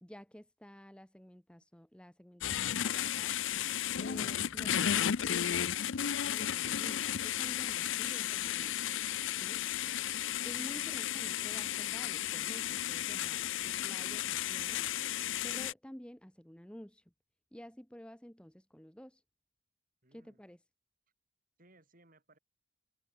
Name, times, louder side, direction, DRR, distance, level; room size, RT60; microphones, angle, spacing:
voice 1, 0.0-3.4 4.0-5.7 6.0-8.8 9.4-9.6 10.4-14.9 15.4-17.0 17.5-19.2 20.1-20.6, equal, 5° left, 1.0 m, -51 dB
sound 1, 2.4-15.7, left 10 dB, 65° left, 0.6 m, -34 dB
voice 2, 20.0-20.4 21.6-22.4, right 2 dB, 40° right, 4.9 m, -64 dB
head